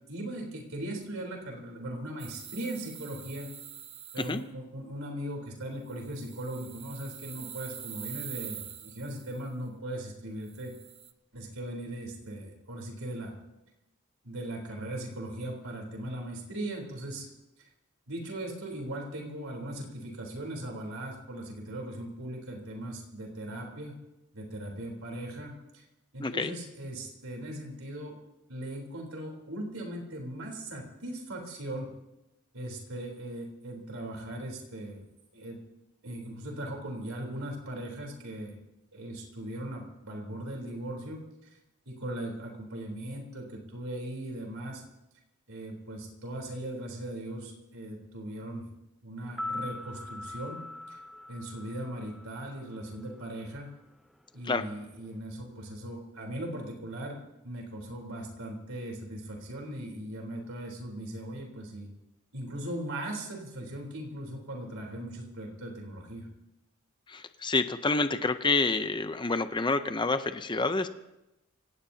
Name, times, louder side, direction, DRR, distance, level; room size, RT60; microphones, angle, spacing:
voice 1, 0.1-3.5 4.1-10.7 11.3-13.3 14.2-17.3 18.1-24.0 24.3-25.8 26.1-28.1 28.5-31.9 32.5-35.0 35.3-35.6 36.0-38.6 38.9-41.6 41.9-44.8 45.5-48.6 49.0-50.6 50.9-51.0 51.3-53.7 54.3-61.9 62.3-66.3, right 1 dB, 90° right, 0 dB, 3.8 m, -39 dB
sound 1, 2.2-4.4 5.9-9.4 10.4-11.1, right 9 dB, 30° right, 0.8 m, -44 dB
voice 2, 26.2-26.5 54.5-54.6 67.1-70.9, left 3 dB, 20° left, 10 dB, 0.6 m, -28 dB
sound 2, 49.2-53.4 53.7-53.8, left 2 dB, ahead, 1.0 m, -41 dB
25.5 x 18.0 x 2.8 m, 0.94 s
head